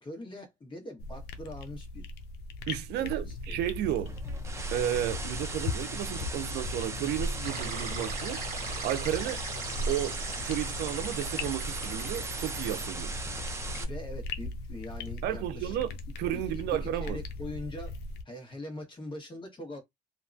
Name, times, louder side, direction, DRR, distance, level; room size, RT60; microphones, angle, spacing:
voice 1, 0.0-2.1 3.0-3.6 13.8-15.8 16.3-18.0 18.2-19.8, left 1 dB, 30° left, 1.3 m, -42 dB
sound 1, 1.0-18.2, left 2 dB, 75° left, 0.5 m, -38 dB
voice 2, 2.7-4.2 4.7-8.4 8.8-9.4 9.9-13.2 15.2-17.2, right 12 dB, 80° right, 0.5 m, -33 dB
sound 2, 4.1-13.8, right 3 dB, 15° right, 0.5 m, -39 dB
sound 3, 7.4-12.9, right 5 dB, 55° right, 1.1 m, -41 dB
2.7 x 2.2 x 2.5 m
cardioid pair, 110°, 17 cm